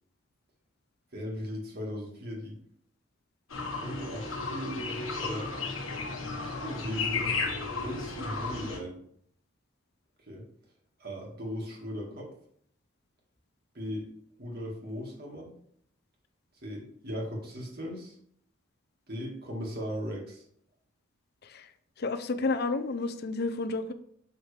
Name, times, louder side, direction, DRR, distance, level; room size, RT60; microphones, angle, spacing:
voice 1, 1.1-2.6 3.8-5.5 6.4-7.4 7.8-9.0 10.3-10.4 11.0-12.3 13.7-14.1 14.4-15.5 16.6-18.2 19.1-20.4, equal, 50° right, -1 dB, 1.9 m, -37 dB
sound 1, 3.5-8.8, left 4 dB, 85° left, 1.4 m, -34 dB
voice 2, 22.0-23.9, left 3 dB, 55° left, 10 dB, 0.6 m, -31 dB
7.2 x 5.6 x 3.3 m, 0.67 s
head